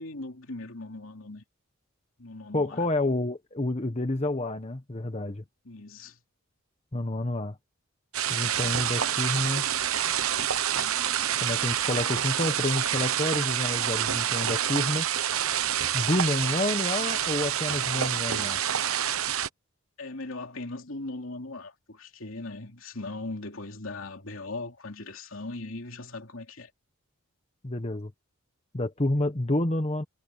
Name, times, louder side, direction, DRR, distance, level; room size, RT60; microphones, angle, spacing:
voice 1, 0.0-1.4 2.2-2.8 5.6-6.2 20.0-26.7, left 2 dB, 65° left, 3.1 m, -39 dB
voice 2, 2.5-5.4 6.9-7.6 8.3-9.7 11.4-15.1 15.9-18.6 27.6-28.1 28.7-30.0, left 1 dB, 30° left, 1.2 m, -29 dB
sound 1, 8.1-19.5, right 10 dB, 75° right, 1.1 m, -27 dB
head